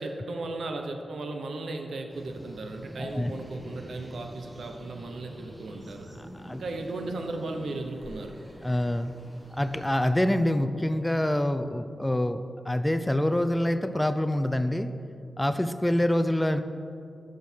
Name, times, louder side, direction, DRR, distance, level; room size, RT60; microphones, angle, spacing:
voice 1, 0.0-6.1 6.5-8.4, right 2 dB, 90° right, 4 dB, 0.9 m, -36 dB
sound 1, 2.1-10.0, equal, 15° right, 1.3 m, -46 dB
voice 2, 3.0-3.3 6.4-6.6 8.6-9.1 9.5-14.9 15.4-16.6, left 1 dB, 10° left, 10 dB, 0.4 m, -26 dB
12.5 x 6.4 x 4.5 m, 2.6 s
wide cardioid pair, 120°, 0 cm